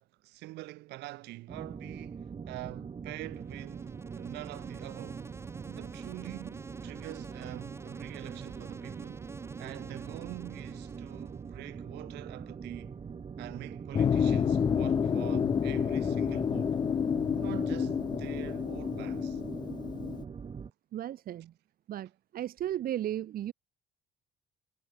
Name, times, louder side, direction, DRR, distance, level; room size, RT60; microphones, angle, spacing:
voice 1, 0.0-5.3 5.7-9.2 9.6-13.0 13.4-16.8 17.3-19.4, right 19 dB, 85° right, 4.2 m, -45 dB
sound 1, 1.5-20.7, right 6 dB, 35° right, 3.4 m, -43 dB
Insect, 3.3-11.6, right 3 dB, 15° right, 3.9 m, -51 dB
sound 2, 13.9-20.2, left 7 dB, 25° left, 0.3 m, -29 dB
voice 2, 20.9-21.5 21.9-23.5, right 12 dB, 60° right, 2.1 m, -35 dB
cardioid pair, 110°, 17 cm